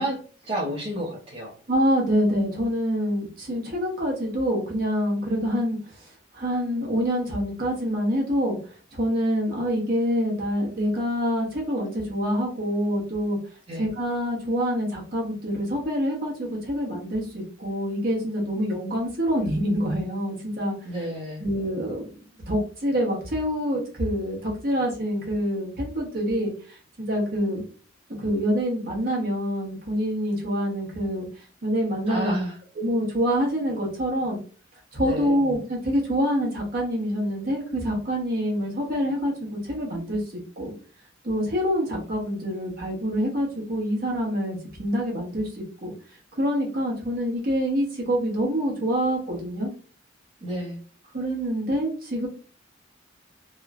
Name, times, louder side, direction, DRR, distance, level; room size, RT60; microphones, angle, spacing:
voice 1, 0.0-1.5 13.7-13.9 20.8-21.4 32.1-32.6 35.0-35.4 50.4-50.8, right 1 dB, 30° right, -6 dB, 0.6 m, -31 dB
voice 2, 1.7-8.6 8.9-13.4 13.7-20.7 21.4-22.1 22.5-27.6 28.2-31.3 31.6-32.3 32.8-34.4 34.9-40.2 40.6-40.7 41.2-45.9 46.4-49.7 51.1-52.3, equal, 50° right, -2 dB, 1.0 m, -26 dB
3.0 x 2.1 x 2.3 m, 0.40 s
head